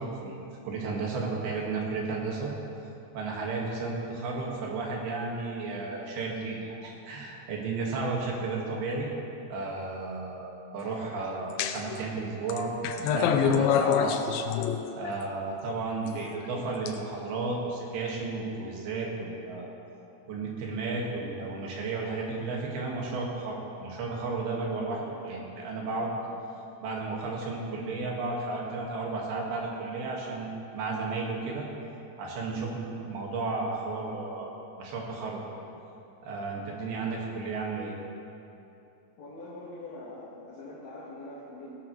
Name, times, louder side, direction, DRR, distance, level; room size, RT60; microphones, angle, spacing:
voice 1, 0.0-2.5 3.1-9.1 9.5-14.2 14.9-19.7 20.3-26.1 26.8-31.7 32.2-34.5 34.8-35.4 36.2-38.0, right 3 dB, 85° right, -2 dB, 3.7 m, -33 dB
sound 1, 11.6-12.0 12.5-15.2 16.1-16.9, left 7 dB, 80° left, 2.3 m, -26 dB
voice 2, 39.2-41.7, left 2 dB, 55° left, -8 dB, 2.6 m, -43 dB
17.0 x 12.5 x 3.1 m, 2.8 s
omnidirectional pair, 4.3 m